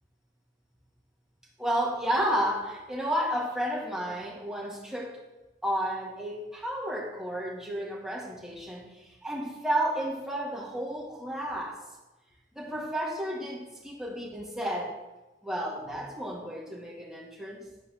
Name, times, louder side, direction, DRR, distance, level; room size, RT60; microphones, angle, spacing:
voice 1, 1.6-5.2 5.6-11.8 12.5-14.9 15.4-17.7, equal, 5° right, -4 dB, 2.0 m, -32 dB
11.0 x 4.8 x 6.3 m, 1.1 s
head